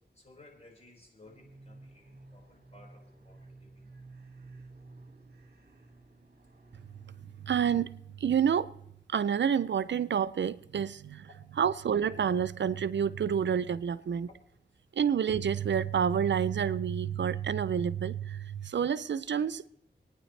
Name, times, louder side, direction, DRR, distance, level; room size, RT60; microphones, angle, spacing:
voice 1, 0.1-3.8 10.9-11.0 11.5-11.6 14.3-14.4, left 2 dB, 35° left, 4.9 m, -57 dB
sound 1, 1.2-7.9, right 2 dB, 60° right, 1.9 m, -53 dB
voice 2, 7.4-7.9 8.2-8.7 9.1-11.3 11.6-14.3 14.9-19.7, right 8 dB, 80° right, 0.5 m, -28 dB
25.5 x 9.8 x 3.2 m
cardioid pair, 50°, 18 cm